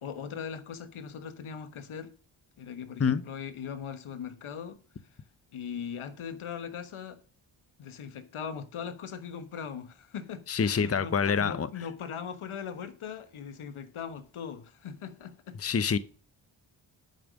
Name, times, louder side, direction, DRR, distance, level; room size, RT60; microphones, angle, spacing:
voice 1, 0.0-2.1 2.6-4.8 5.5-7.2 7.8-15.6, left 7 dB, 75° left, 1.3 m, -40 dB
voice 2, 10.5-11.7 15.6-16.0, left 6 dB, 30° left, 0.8 m, -26 dB
11.0 x 5.2 x 6.2 m
cardioid pair, 45°, 49 cm